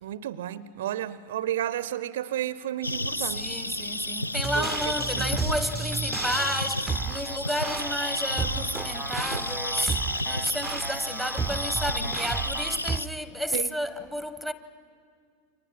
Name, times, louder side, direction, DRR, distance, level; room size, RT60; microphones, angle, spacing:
voice 1, 0.0-3.5 4.5-4.8 5.1-5.3 13.5-13.7, right 12 dB, 60° right, 0.6 m, -32 dB
sound 1, 2.8-13.1, left 1 dB, 85° left, 0.6 m, -32 dB
voice 2, 3.2-14.5, equal, 5° left, 1.2 m, -31 dB
sound 2, 4.4-13.0, right 5 dB, 15° right, 0.6 m, -33 dB
29.5 x 24.5 x 6.0 m
figure-of-eight pair, 90°, 0 cm